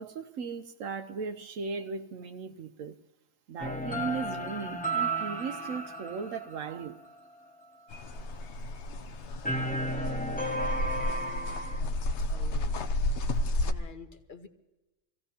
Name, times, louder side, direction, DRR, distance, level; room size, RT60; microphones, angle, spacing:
voice 1, 0.0-3.0 3.5-7.0, right 5 dB, 80° right, 1.1 m, -37 dB
sound 1, 3.6-7.3 9.4-11.8, right 1 dB, 10° left, 0.7 m, -33 dB
sound 2, 7.9-13.7, left 1 dB, 65° left, 1.0 m, -32 dB
voice 2, 11.0-12.8 13.1-14.5, left 4 dB, 40° left, 1.2 m, -51 dB
25.0 x 16.0 x 2.9 m
omnidirectional pair, 1.3 m